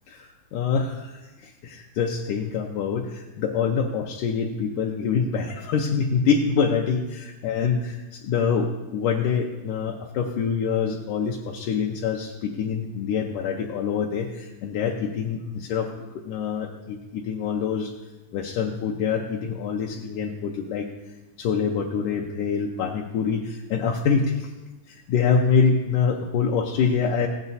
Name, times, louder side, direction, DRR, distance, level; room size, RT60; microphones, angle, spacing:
voice 1, 0.1-16.0 16.2-17.9 18.3-20.9 21.4-24.5 24.9-27.3, left 6 dB, 75° left, 0 dB, 2.1 m, -25 dB
16.0 x 9.1 x 4.1 m, 1.1 s
omnidirectional pair, 4.0 m